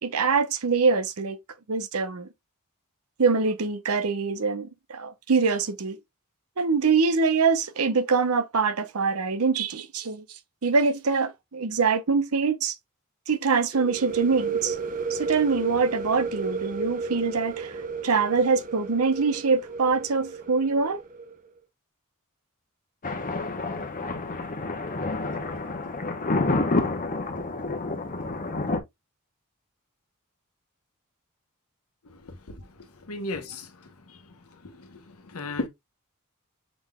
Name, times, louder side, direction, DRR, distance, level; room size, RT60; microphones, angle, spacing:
voice 1, 0.0-1.4 1.7-2.3 3.2-6.0 6.6-10.2 10.6-12.7 13.3-14.8 15.1-21.0, right 4 dB, 75° right, 0.8 m, -24 dB
sound 1, 13.7-21.3, right 4 dB, 40° right, 0.6 m, -33 dB
Thunder, 23.0-28.8, left 2 dB, 40° left, 0.9 m, -28 dB
voice 2, 33.1-33.6 35.3-35.7, left 2 dB, 70° left, 1.0 m, -31 dB
6.1 x 3.8 x 2.3 m
head